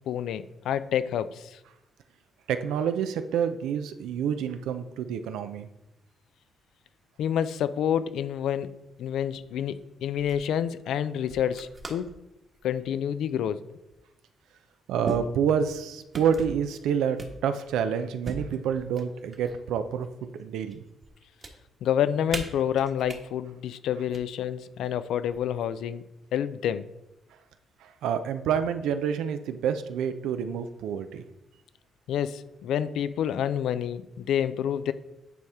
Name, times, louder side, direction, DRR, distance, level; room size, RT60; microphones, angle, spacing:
voice 1, 0.1-1.6 7.2-12.1 12.6-13.6 21.8-26.0 26.3-26.9 32.1-34.9, left 9 dB, 80° left, 13 dB, 0.4 m, -28 dB
voice 2, 2.5-5.7 14.9-20.8 27.8-31.2, right 7 dB, 85° right, 9 dB, 0.5 m, -28 dB
sound 1, 9.7-9.8 10.2-10.5 11.3-12.2 12.6-12.9 13.9-14.0 15.0-15.8 16.1-16.6 17.2-17.8 18.2-19.6 20.0-20.7 21.0-21.5 22.3-23.2 23.9-24.2 25.3-25.8, right 2 dB, 40° right, 1.3 m, -39 dB
9.3 x 4.3 x 3.5 m, 0.93 s
supercardioid pair, 65°, 0 cm